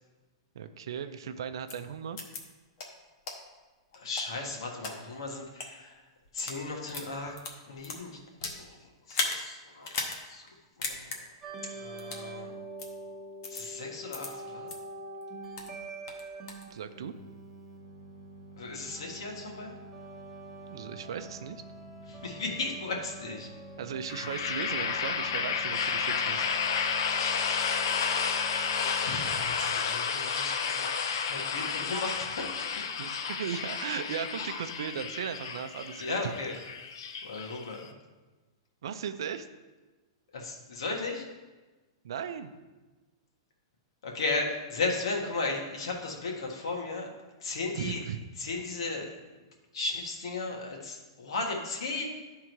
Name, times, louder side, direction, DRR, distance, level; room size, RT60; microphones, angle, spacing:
voice 1, 0.5-2.2 16.7-17.1 20.7-21.6 23.8-26.5 33.0-36.3 38.8-39.5 42.0-42.5 47.7-48.2, right 7 dB, 65° right, 10 dB, 0.5 m, -37 dB
sound 1, 1.7-1.8 2.2-2.4 2.8-2.9 3.3-3.4 3.9-4.9 5.5-5.7 6.2-6.6 6.9-8.6 9.1-9.4 9.8-10.2 10.5-10.6 10.8-11.2 12.0-12.3 12.8-12.9 13.4-13.6 14.1-14.3 14.7-14.8 15.2-15.7 16.1-16.6, left 3 dB, 35° left, 0.9 m, -35 dB
voice 2, 3.9-6.1 6.3-7.4 7.6-8.2 8.5-8.8 9.1-10.5 10.8-11.2 11.6-12.5 13.5-14.7 18.6-19.8 22.1-23.5 29.0-30.8 31.2-32.9 36.0-36.6 37.2-38.0 40.3-41.3 44.0-48.0 48.4-49.1 49.7-52.0, left 3 dB, 75° left, 1 dB, 1.5 m, -35 dB
sound 2, 11.4-29.3, right 2 dB, ahead, 0.8 m, -45 dB
sound 3, 24.1-37.9, left 6 dB, 55° left, 0.5 m, -31 dB
11.0 x 3.7 x 4.6 m, 1.2 s
supercardioid pair, 180°, 3 cm